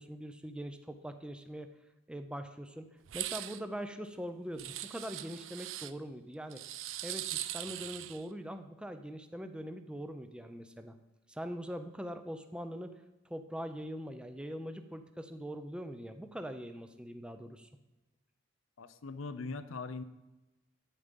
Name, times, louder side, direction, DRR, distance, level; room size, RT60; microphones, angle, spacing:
voice 1, 0.0-1.7 2.1-6.6 7.0-10.9 11.3-13.0 13.3-17.7, equal, 5° right, 8 dB, 0.5 m, -42 dB
sound 1, 3.1-3.6 4.6-5.9 6.5-8.2, right 13 dB, 70° right, 0.5 m, -40 dB
voice 2, 18.8-20.0, left 3 dB, 80° left, 13 dB, 0.6 m, -41 dB
10.0 x 8.6 x 5.2 m, 1.0 s
head